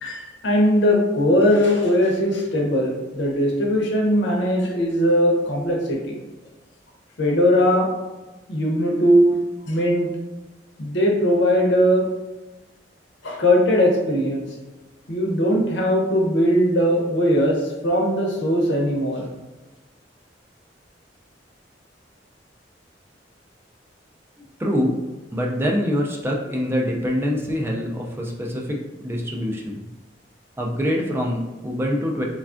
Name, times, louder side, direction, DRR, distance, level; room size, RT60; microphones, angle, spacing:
voice 1, 0.0-6.2 7.2-7.9 8.5-9.4 9.7-10.1 10.8-12.0 13.2-14.5 15.1-19.3, equal, 80° left, 0 dB, 0.7 m, -19 dB
voice 2, 24.6-25.0 25.3-29.9 30.6-32.2, equal, 15° right, -1 dB, 0.4 m, -25 dB
3.3 x 2.3 x 2.4 m, 1.1 s
head